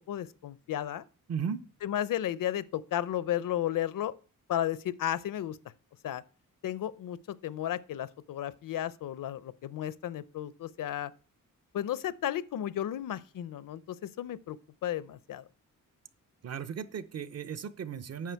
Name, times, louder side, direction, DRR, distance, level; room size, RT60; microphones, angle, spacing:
voice 1, 0.1-1.0 1.8-4.1 4.5-5.6 6.0-6.2 6.6-11.1 11.7-14.6 14.8-15.5, left 11 dB, 75° left, 0.6 m, -33 dB
voice 2, 1.3-1.6 16.4-18.3, right 7 dB, 50° right, 0.6 m, -36 dB
9.4 x 6.3 x 4.6 m
wide cardioid pair, 145°, 33 cm